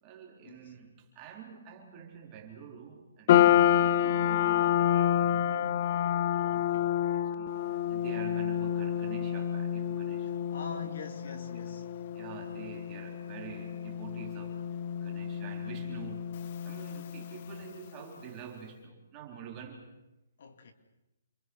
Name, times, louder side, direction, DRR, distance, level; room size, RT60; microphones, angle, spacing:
voice 1, 0.0-3.6 3.9-5.8 6.3-10.9 11.3-11.4 12.1-14.7 15.0-19.9, right 7 dB, 20° right, 4.1 m, -47 dB
sound 1, 3.3-17.7, left 10 dB, 35° left, 0.9 m, -29 dB
voice 2, 6.5-7.1 10.5-11.9 20.4-20.7, left 5 dB, 55° left, 2.9 m, -44 dB
28.5 x 25.0 x 6.4 m
hypercardioid pair, 170°, 0 cm